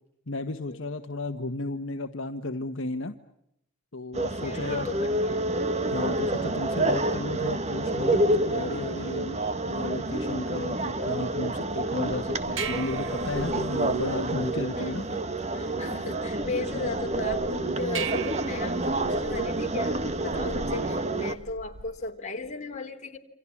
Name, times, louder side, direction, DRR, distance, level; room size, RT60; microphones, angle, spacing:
voice 1, 0.3-3.1 3.9-4.9 5.9-15.1, left 2 dB, 60° left, 6 dB, 1.4 m, -34 dB
sound 1, 4.1-21.4, right 1 dB, 30° right, 1.5 m, -28 dB
voice 2, 4.4-5.5 9.6-9.7 14.8-15.2 15.5-23.2, left 3 dB, 35° left, 2 dB, 3.6 m, -36 dB
sound 2, 12.1-22.1, right 6 dB, 65° right, 1.8 m, -41 dB
28.5 x 27.0 x 7.3 m, 0.78 s
head